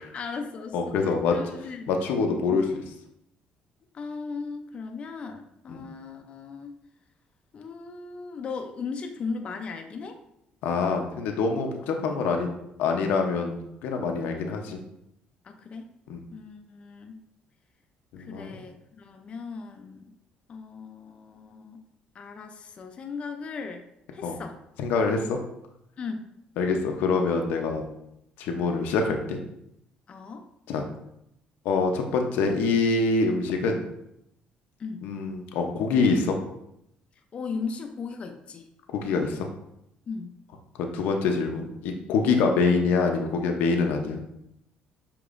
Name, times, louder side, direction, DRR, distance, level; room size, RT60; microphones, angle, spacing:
voice 1, 0.0-1.9 2.5-2.6 3.9-6.7 7.5-10.2 15.4-15.9 16.3-17.2 18.2-20.2 20.5-21.8 22.1-23.8 24.1-24.6 26.0-26.3 30.1-30.4 34.8-35.1 37.3-38.7 40.1-40.4, left 4 dB, 40° left, 4 dB, 0.4 m, -37 dB
voice 2, 0.7-1.5 1.9-2.8 5.7-5.8 10.6-12.5 12.8-14.8 16.1-16.2 18.1-18.6 24.2-24.4 24.8-25.4 26.6-27.9 28.4-29.4 30.7-30.8 31.6-33.8 35.0-36.4 38.9-39.5 40.8-44.2, left 4 dB, 85° left, 3 dB, 0.6 m, -25 dB
6.7 x 2.9 x 2.5 m, 0.80 s
cardioid pair, 115°, 3 cm